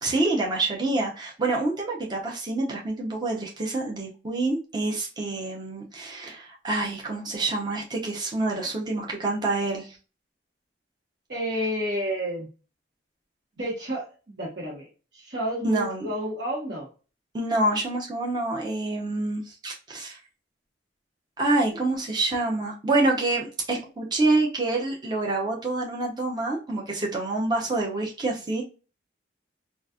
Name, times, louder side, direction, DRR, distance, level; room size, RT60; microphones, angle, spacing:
voice 1, 0.0-10.0 15.6-16.1 17.3-20.2 21.4-28.6, right 2 dB, 25° right, -2 dB, 0.7 m, -27 dB
voice 2, 11.3-12.5 13.6-14.9 15.1-16.9, equal, 65° right, -6 dB, 1.2 m, -30 dB
4.0 x 2.4 x 2.3 m, 0.34 s
head